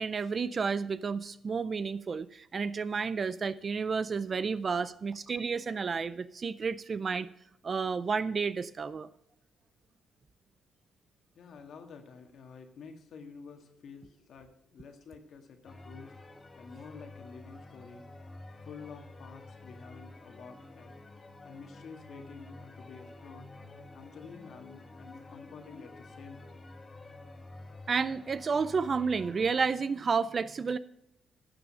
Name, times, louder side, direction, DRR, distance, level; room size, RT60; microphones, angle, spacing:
voice 1, 0.0-7.3 7.6-9.1 27.9-30.8, right 5 dB, 40° right, 15 dB, 0.4 m, -31 dB
voice 2, 11.3-16.1 16.6-18.0 18.6-20.9 21.4-23.5 23.9-26.6, left 5 dB, 65° left, 4 dB, 1.7 m, -49 dB
sound 1, 15.7-29.7, left 2 dB, 25° left, 1.3 m, -50 dB
12.0 x 7.0 x 5.5 m, 0.81 s
cardioid pair, 90°, 0 cm